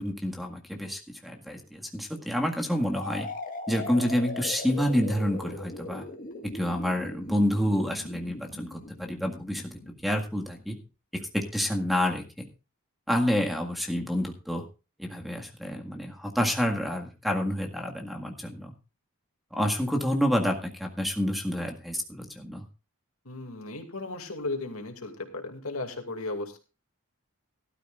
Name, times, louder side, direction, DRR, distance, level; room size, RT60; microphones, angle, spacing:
voice 1, 0.0-3.3 3.7-6.1 6.4-9.7 10.0-10.8 11.1-12.5 13.1-14.6 15.0-18.7 19.5-22.6, equal, ahead, 2 dB, 1.8 m, -28 dB
sound 1, 2.9-10.6, left 2 dB, 40° left, 1.8 m, -40 dB
voice 2, 23.2-26.6, left 2 dB, 90° left, 5 dB, 2.4 m, -35 dB
17.5 x 12.5 x 2.5 m, 0.31 s
head